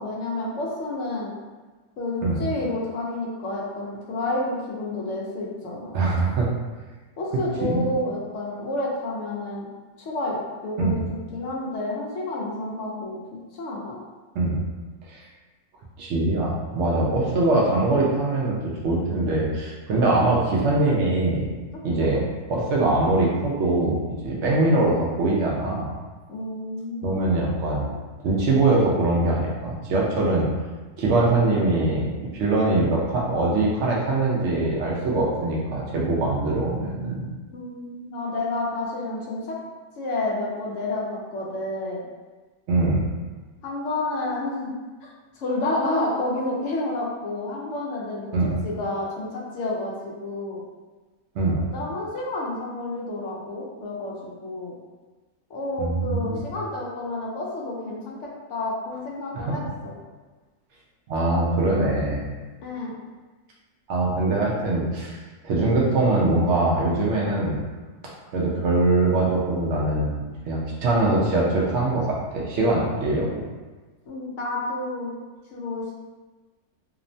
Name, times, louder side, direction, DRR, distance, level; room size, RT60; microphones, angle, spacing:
voice 1, 0.0-1.3 2.0-6.0 7.2-9.7 10.0-10.4 10.6-11.0 11.3-13.2 13.5-14.0 26.3-27.2 37.5-39.6 40.0-42.0 43.6-44.7 45.4-48.3 48.6-50.6 51.7-54.7 55.5-59.9 62.6-62.9 74.1-75.1 75.5-75.9, left 2 dB, 65° left, -4 dB, 0.7 m, -30 dB
voice 2, 5.9-6.5 7.6-7.8 10.8-11.0 14.3-14.6 15.1-15.2 16.0-18.6 18.8-21.5 21.8-25.9 27.0-27.9 28.2-30.5 31.0-37.3 42.7-43.1 48.3-48.5 51.4-51.6 55.8-56.4 59.3-59.6 61.1-62.3 63.9-65.2 65.4-67.7 68.3-73.3, right 2 dB, 70° right, -3 dB, 0.7 m, -22 dB
2.8 x 2.1 x 2.5 m, 1.3 s
omnidirectional pair, 1.7 m